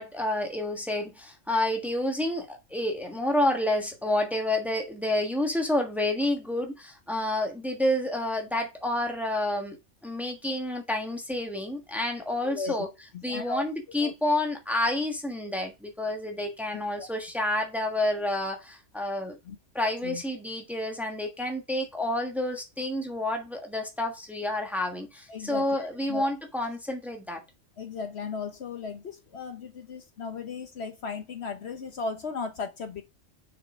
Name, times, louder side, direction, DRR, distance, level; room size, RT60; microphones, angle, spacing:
voice 1, 0.0-9.8 10.0-12.9 13.2-19.4 19.7-27.4, left 1 dB, ahead, 1.3 m, -29 dB
voice 2, 12.4-12.8 13.3-13.6 14.0-14.1 17.0-17.1 19.5-19.6 20.0-20.2 25.3-26.3 27.8-33.0, left 4 dB, 60° left, 1.1 m, -36 dB
6.5 x 4.9 x 5.3 m
omnidirectional pair, 1.3 m